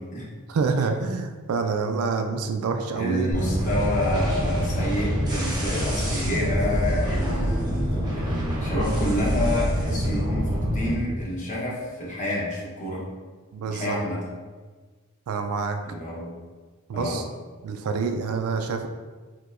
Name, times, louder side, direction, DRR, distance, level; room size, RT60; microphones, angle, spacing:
voice 1, 0.5-3.4 13.5-14.0 15.3-15.8 16.9-17.3 17.6-18.9, right 4 dB, 75° right, 6 dB, 0.3 m, -27 dB
voice 2, 2.9-13.0 13.6-14.2 15.8-16.3 16.9-17.2, left 1 dB, 35° left, -5 dB, 0.9 m, -28 dB
sound 1, 3.3-10.9, equal, 20° right, 0.6 m, -26 dB
4.6 x 2.1 x 2.5 m, 1.4 s
head